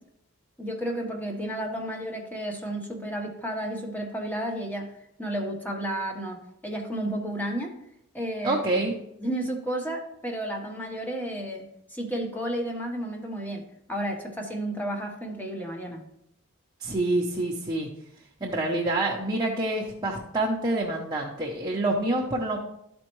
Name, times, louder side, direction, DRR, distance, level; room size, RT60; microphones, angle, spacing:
voice 1, 0.6-4.9 5.2-7.7 8.1-8.6 9.2-13.6 13.9-16.0, right 1 dB, 10° left, 1 dB, 1.1 m, -32 dB
voice 2, 8.4-8.9 16.8-17.9 18.4-22.6, right 2 dB, 20° right, -2 dB, 0.8 m, -27 dB
12.5 x 4.3 x 3.1 m, 0.77 s
head